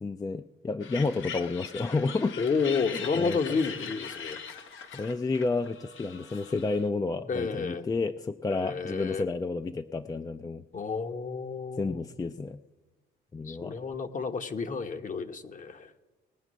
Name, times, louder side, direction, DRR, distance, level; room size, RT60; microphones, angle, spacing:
voice 1, 0.0-2.4 3.1-3.4 4.9-10.6 11.8-12.6 13.3-13.8, left 3 dB, 20° left, 10 dB, 0.4 m, -30 dB
sound 1, 0.8-6.9, left 7 dB, 80° left, 1.2 m, -41 dB
voice 2, 2.4-4.4 7.3-7.9 8.5-9.3 10.7-12.0 13.4-15.9, left 5 dB, 40° left, 8 dB, 1.0 m, -31 dB
19.0 x 9.0 x 6.3 m, 1.2 s
cardioid pair, 90°, 20 cm